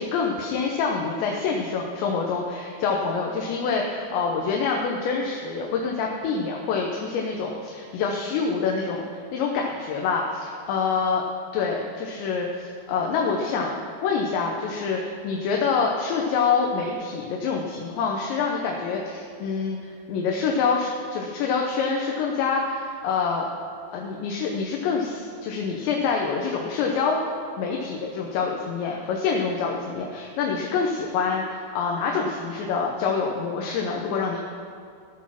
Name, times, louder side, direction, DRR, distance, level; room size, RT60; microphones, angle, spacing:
voice 1, 0.0-11.2 11.5-13.8 14.0-23.5 23.9-27.2 27.6-34.4, left 5 dB, 85° left, 0 dB, 3.1 m, -26 dB
15.5 x 6.2 x 5.8 m, 2.5 s
omnidirectional pair, 5.0 m